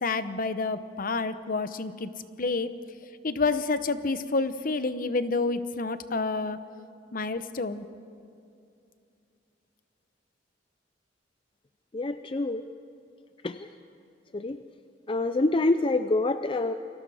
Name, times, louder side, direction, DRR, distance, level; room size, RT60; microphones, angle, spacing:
voice 1, 0.0-2.1 2.4-2.7 3.2-6.6 7.1-7.9, left 3 dB, 50° left, 12 dB, 0.9 m, -29 dB
voice 2, 11.9-12.6 13.4-13.7 14.3-14.6 15.1-16.7, left 2 dB, 30° left, 10 dB, 0.5 m, -26 dB
29.5 x 22.5 x 4.9 m, 2.5 s
head